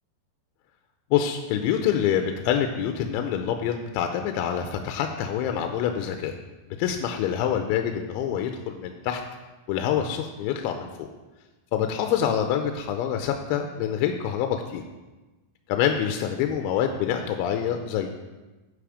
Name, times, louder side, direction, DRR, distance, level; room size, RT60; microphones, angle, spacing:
voice 1, 1.1-6.3 6.8-9.2 9.7-11.1 11.7-14.9 15.7-18.1, left 9 dB, 80° left, 5 dB, 2.9 m, -26 dB
10.0 x 5.7 x 4.9 m, 1.2 s
omnidirectional pair, 5.5 m